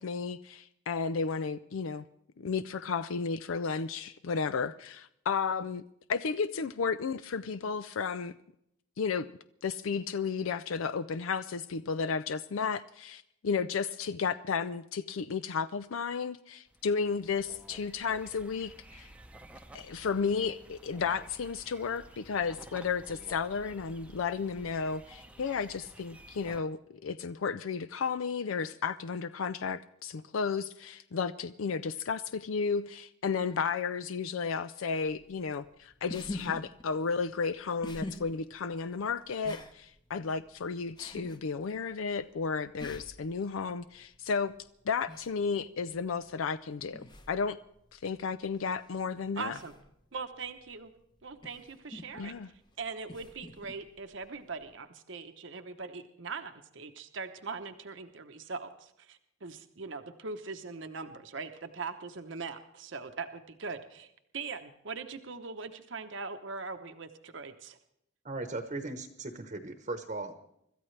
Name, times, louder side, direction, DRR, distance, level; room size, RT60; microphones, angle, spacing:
voice 1, 0.0-2.0 2.4-5.8 6.1-8.3 9.0-9.3 9.6-19.1 19.7-44.5 44.9-47.6 47.9-49.6 52.2-52.5, left 5 dB, 75° left, 0.5 m, -33 dB
sound 1, 16.7-26.6, right 1 dB, 5° right, 0.7 m, -53 dB
sound 2, 35.1-54.8, left 2 dB, 20° left, 0.9 m, -48 dB
voice 2, 49.4-49.7 50.1-50.9 51.2-52.3 52.8-67.8, right 4 dB, 60° right, 0.9 m, -41 dB
voice 3, 68.2-70.3, right 2 dB, 35° right, 1.0 m, -37 dB
25.5 x 13.5 x 3.3 m
head